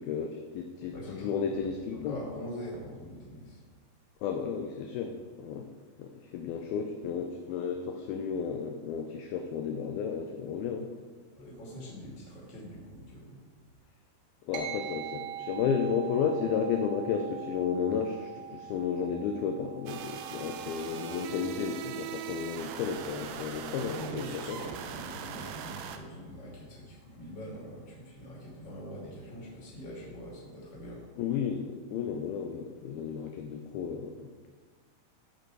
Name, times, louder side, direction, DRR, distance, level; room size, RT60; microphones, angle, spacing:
voice 1, 0.0-2.2 4.2-5.7 6.0-10.9 14.5-24.6 31.2-34.5, left 6 dB, 80° left, 4 dB, 2.3 m, -33 dB
voice 2, 0.9-1.4 1.9-3.6 11.4-13.4 23.7-31.0, equal, 30° left, -4 dB, 2.8 m, -43 dB
sound 1, 14.5-24.3, right 10 dB, 70° right, 2.4 m, -44 dB
sound 2, 19.9-26.0, right 8 dB, 85° right, 2.1 m, -40 dB
14.5 x 5.3 x 4.6 m, 1.4 s
omnidirectional pair, 4.8 m